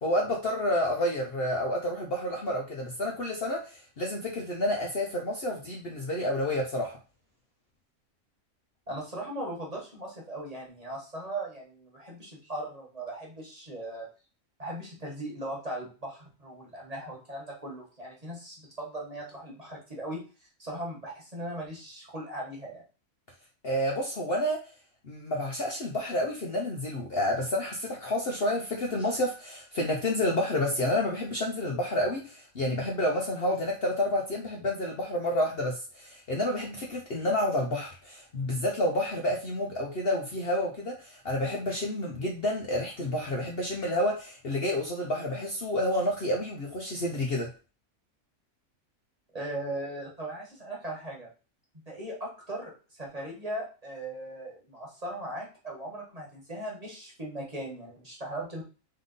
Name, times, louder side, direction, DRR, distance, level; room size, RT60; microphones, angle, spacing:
voice 1, 0.0-6.9 23.6-24.6 25.1-47.5, left 1 dB, 50° left, -1 dB, 0.9 m, -29 dB
voice 2, 8.9-14.1 14.6-20.2 20.6-22.8 49.3-51.3 51.9-58.6, right 1 dB, 25° right, -3 dB, 1.4 m, -38 dB
3.5 x 3.3 x 3.9 m, 0.34 s
omnidirectional pair, 1.5 m